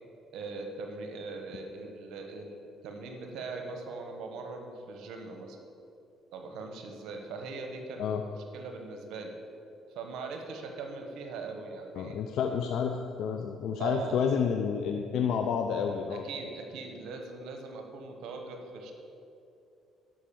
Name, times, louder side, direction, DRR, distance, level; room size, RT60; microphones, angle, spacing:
voice 1, 0.3-5.6 6.3-8.1 8.5-9.3 9.9-12.2 13.8-14.1 16.1-18.9, right 4 dB, 80° right, 4 dB, 1.2 m, -40 dB
voice 2, 11.9-16.2, left 7 dB, 75° left, 4 dB, 0.6 m, -30 dB
11.5 x 5.9 x 7.1 m, 2.7 s
cardioid pair, 85°, 0 cm